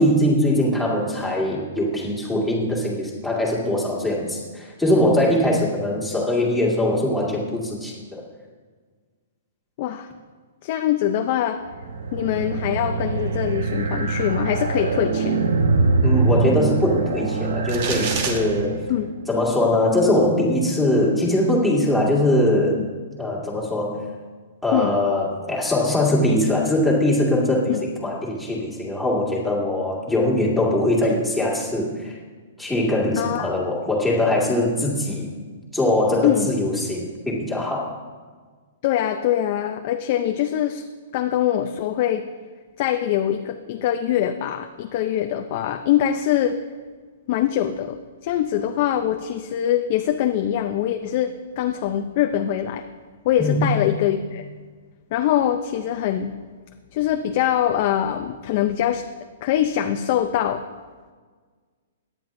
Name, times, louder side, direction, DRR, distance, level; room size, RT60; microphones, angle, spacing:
voice 1, 0.0-8.2 16.0-18.8 19.3-22.8 23.2-24.0 24.6-32.2 32.6-35.3 35.7-37.9 53.4-53.7, left 1 dB, ahead, -5 dB, 2.0 m, -21 dB
voice 2, 9.8-10.1 10.6-11.6 12.1-15.4 18.9-19.1 22.8-22.9 24.7-25.0 27.7-27.8 33.2-33.5 36.2-36.5 38.8-40.8 41.1-42.3 42.8-46.6 47.3-52.9 53.2-54.4 55.1-56.3 56.9-59.0 59.4-60.6, left 11 dB, 40° left, 6 dB, 0.5 m, -23 dB
sound 1, 11.7-19.1, right 4 dB, 85° right, 1.0 m, -23 dB
sound 2, 17.7-18.4, right 5 dB, 45° right, 1.4 m, -27 dB
17.0 x 10.5 x 2.6 m, 1.5 s
hypercardioid pair, 160°, 0 cm